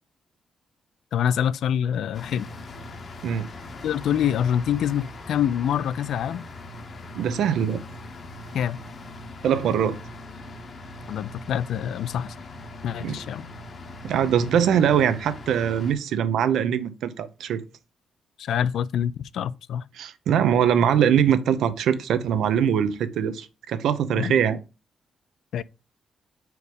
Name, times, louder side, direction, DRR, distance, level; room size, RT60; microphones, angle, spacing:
voice 1, 1.1-2.5 3.8-6.4 8.5-8.8 11.1-12.3 12.8-13.5 18.4-19.8 24.1-24.3 25.5-25.6, left 9 dB, 80° left, 0.4 m, -26 dB
sound 1, 2.1-15.9, left 2 dB, 40° left, 0.9 m, -41 dB
voice 2, 7.1-7.8 9.4-10.0 13.0-13.1 14.0-17.6 20.0-24.6, right 8 dB, 90° right, 0.7 m, -22 dB
4.7 x 4.7 x 5.1 m
cardioid pair, 135°, 0 cm